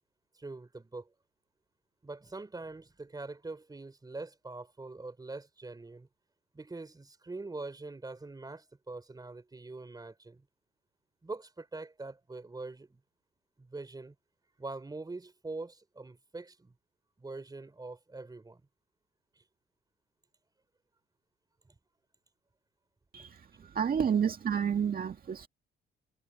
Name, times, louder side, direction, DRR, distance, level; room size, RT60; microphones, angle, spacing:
voice 1, 0.3-1.1 2.0-6.1 6.5-10.4 11.2-13.0 13.6-14.1 14.6-16.7 17.2-18.6 19.4-19.5, right 3 dB, 20° right, 3.5 m, -43 dB
voice 2, 23.1-25.5, right 7 dB, 50° right, 2.0 m, -30 dB
cardioid pair, 90°, 20 cm